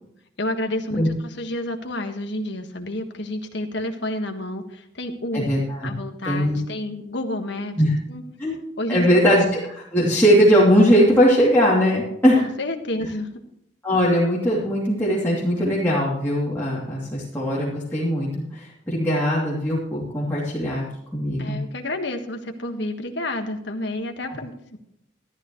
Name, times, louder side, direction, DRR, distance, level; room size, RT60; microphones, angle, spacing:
voice 1, 0.4-5.5 5.8-7.8 8.1-8.2 8.8-9.3 12.4-13.3 21.4-24.8, left 1 dB, 60° left, 5 dB, 1.6 m, -30 dB
voice 2, 5.3-5.9 6.3-6.6 7.8-7.9 8.4-8.6 8.9-12.5 13.8-20.8 21.1-21.6 24.3-24.4, equal, 10° left, -8 dB, 2.9 m, -20 dB
13.5 x 12.5 x 3.1 m, 0.76 s
head